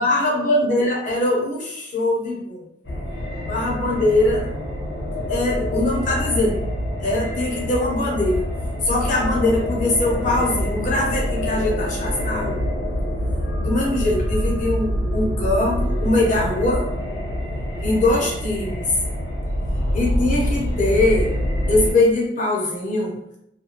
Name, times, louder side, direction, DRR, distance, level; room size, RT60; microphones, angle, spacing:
voice 1, 0.0-2.7 3.4-4.4 5.3-6.6 7.0-8.4 8.8-12.6 13.6-16.8 17.8-18.8 19.9-21.3 21.7-23.2, left 2 dB, 45° left, -4 dB, 0.8 m, -21 dB
sound 1, 2.8-21.9, equal, 85° left, 0.9 m, -26 dB
2.5 x 2.2 x 2.8 m, 0.77 s
head